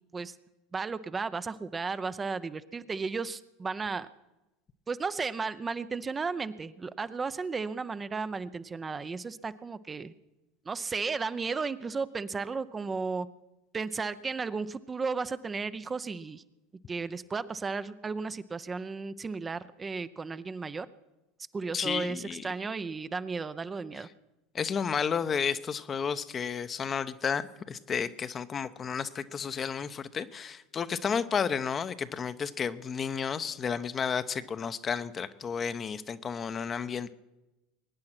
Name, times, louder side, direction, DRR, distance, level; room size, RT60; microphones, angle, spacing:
voice 1, 0.7-4.1 4.9-10.1 10.7-13.3 13.7-16.4 16.9-20.9 21.5-24.1, right 4 dB, 20° right, 12 dB, 0.6 m, -34 dB
voice 2, 21.7-22.5 24.5-37.1, left 6 dB, 30° left, 12 dB, 0.8 m, -32 dB
22.5 x 9.7 x 6.0 m, 1.0 s
figure-of-eight pair, 75°, 0 cm